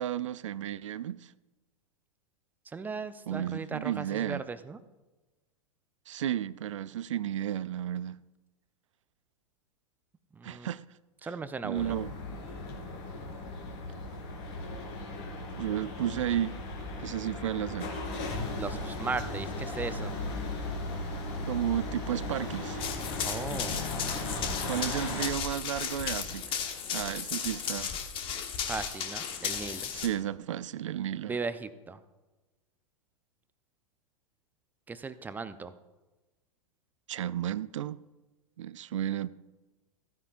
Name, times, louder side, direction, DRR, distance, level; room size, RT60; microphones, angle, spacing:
voice 1, 0.0-1.3 3.3-4.5 6.1-8.2 10.4-10.8 11.2-11.3 11.6-12.1 15.6-16.6 17.0-17.9 21.4-22.8 24.6-26.6 26.9-27.9 29.9-31.4 37.1-38.0 38.6-39.3, right 11 dB, 65° right, 0.4 m, -33 dB
voice 2, 2.7-4.8 10.3-10.7 11.2-12.0 18.5-20.1 23.2-23.9 28.7-29.9 31.3-32.0 34.9-35.7, right 4 dB, 10° right, 0.5 m, -37 dB
sound 1, 11.7-25.3, left 2 dB, 50° left, 3.1 m, -37 dB
Run, 22.8-30.1, left 7 dB, 30° left, 1.2 m, -35 dB
15.0 x 9.5 x 2.5 m
figure-of-eight pair, 100°, 17 cm